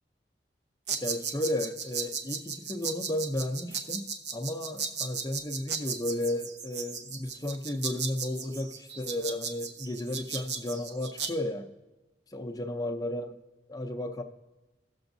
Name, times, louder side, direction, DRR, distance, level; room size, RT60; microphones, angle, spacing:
sound 1, 0.9-11.3, right 6 dB, 85° right, 0.9 m, -36 dB
voice 1, 1.0-11.7 12.3-13.4 13.7-14.2, left 1 dB, 20° left, 0.5 m, -33 dB
16.5 x 7.0 x 2.6 m
head